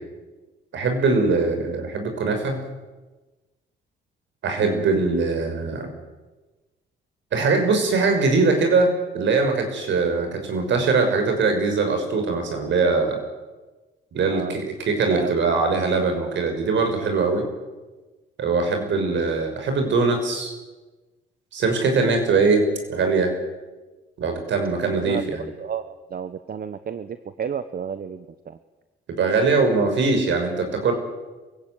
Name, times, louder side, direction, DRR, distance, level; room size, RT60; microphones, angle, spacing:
voice 1, 0.7-2.6 4.4-5.9 7.3-13.2 14.1-17.5 18.4-20.5 21.5-22.6 22.9-23.3 24.2-25.5 29.2-30.9, right 4 dB, 70° right, 5 dB, 6.1 m, -21 dB
voice 2, 14.3-14.6 15.1-15.4 25.0-25.2 25.6-28.6, right 7 dB, 50° right, 12 dB, 1.1 m, -31 dB
23.0 x 16.5 x 9.6 m, 1.2 s
cardioid pair, 90°, 20 cm